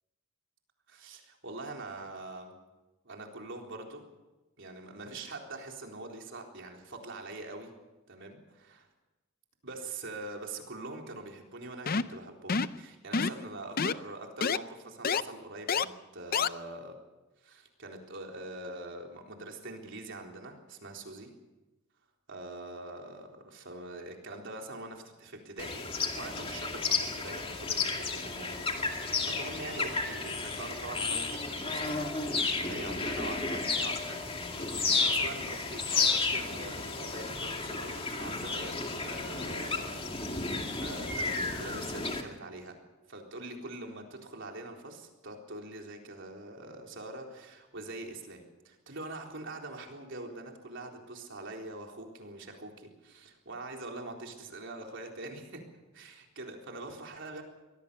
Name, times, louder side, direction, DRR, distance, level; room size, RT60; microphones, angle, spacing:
voice 1, 0.9-2.5 3.0-4.0 4.6-7.7 8.1-8.9 9.6-17.0 17.4-21.3 22.3-25.9 26.1-32.2 32.6-34.2 34.7-40.2 40.5-42.8 43.1-55.7 55.9-57.4, right 2 dB, 60° right, 2 dB, 3.9 m, -44 dB
sound 1, 11.9-12.2 12.5-12.8 13.1-13.4 13.8-13.9 14.4-14.6 15.0-15.2 15.7-15.8 16.3-16.5, left 5 dB, 45° left, 0.6 m, -28 dB
sound 2, 25.6-42.2, left 4 dB, 25° left, 2.4 m, -32 dB
24.0 x 18.0 x 7.0 m, 1.1 s
head